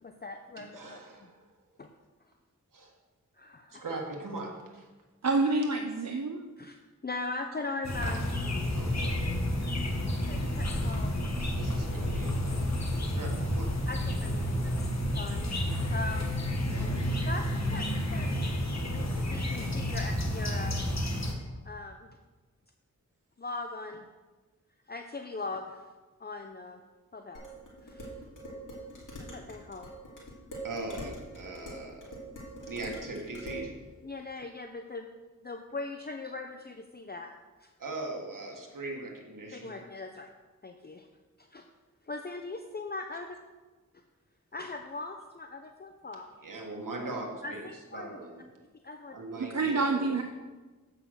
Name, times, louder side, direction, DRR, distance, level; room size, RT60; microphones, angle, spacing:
voice 1, 0.0-1.0 1.8-1.9 3.4-3.8 6.6-6.8 7.0-8.7 10.3-11.2 13.9-15.6 15.9-16.4 17.3-20.8 21.6-22.1 23.4-24.0 24.9-25.8 26.2-26.8 27.1-27.4 27.8-28.1 29.2-29.9 34.0-35.1 35.4-37.3 37.6-37.7 39.5-40.3 40.6-41.1 41.4-41.7 42.1-43.4 44.5-46.3 47.4-48.2 48.8-49.2, left 3 dB, 30° left, 5 dB, 0.6 m, -40 dB
voice 2, 0.6-1.5 2.7-2.9 3.7-4.8 8.7-9.2 11.5-12.6 13.2-13.7 16.7-17.0 30.6-32.2 32.7-33.7 37.8-39.8 46.4-48.4 49.1-50.2, right 2 dB, 85° right, 0 dB, 1.5 m, -40 dB
voice 3, 5.2-6.5 49.4-50.2, right 3 dB, 60° right, 5 dB, 0.7 m, -27 dB
sound 1, 7.8-21.3, left 1 dB, 55° left, 1.5 m, -30 dB
Dishes pots and pans, 27.3-33.7, right 1 dB, 75° left, 2.5 m, -43 dB
8.0 x 5.6 x 6.3 m, 1.3 s
cardioid pair, 40°, 31 cm